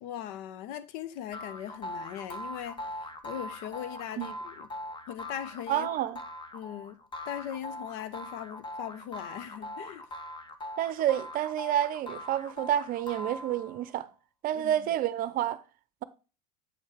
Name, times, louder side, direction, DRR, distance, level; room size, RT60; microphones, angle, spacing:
voice 1, 0.0-4.7 5.1-5.9 6.5-7.0 7.3-10.1 14.5-14.9, left 10 dB, 60° left, 0.8 m, -40 dB
sound 1, 1.3-13.9, left 1 dB, 25° left, 1.2 m, -41 dB
voice 2, 5.7-6.2 10.8-14.1 14.4-15.6, right 12 dB, 45° right, 0.7 m, -29 dB
8.0 x 5.5 x 3.5 m
hypercardioid pair, 85°, 21 cm